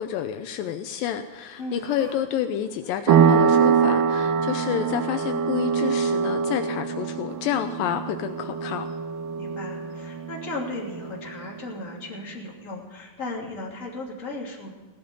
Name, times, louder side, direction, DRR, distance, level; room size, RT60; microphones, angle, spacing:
voice 1, 0.0-8.9, left 10 dB, 80° left, 8 dB, 2.4 m, -29 dB
Laughter, 1.4-2.2 2.5-3.8 4.7-5.1 6.4-6.6 7.5-7.6, right 3 dB, 50° right, 6.4 m, -48 dB
voice 2, 1.6-1.9 9.4-14.7, left 2 dB, 25° left, -2 dB, 3.0 m, -36 dB
sound 1, 3.1-11.4, right 7 dB, 75° right, 2.6 m, -24 dB
16.5 x 12.0 x 5.4 m, 1.4 s
omnidirectional pair, 4.1 m